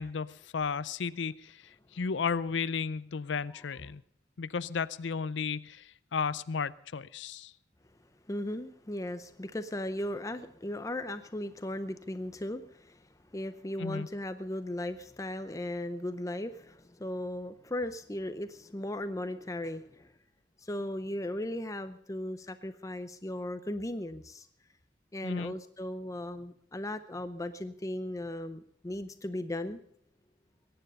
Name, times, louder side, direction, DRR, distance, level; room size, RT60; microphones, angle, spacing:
voice 1, 0.0-4.0 4.4-7.5 13.8-14.1 25.2-25.5, left 5 dB, 80° left, 16 dB, 0.5 m, -34 dB
voice 2, 8.3-20.1 20.6-24.5 25.1-29.8, left 1 dB, 20° left, 10 dB, 0.6 m, -37 dB
22.0 x 10.0 x 5.4 m, 0.68 s
head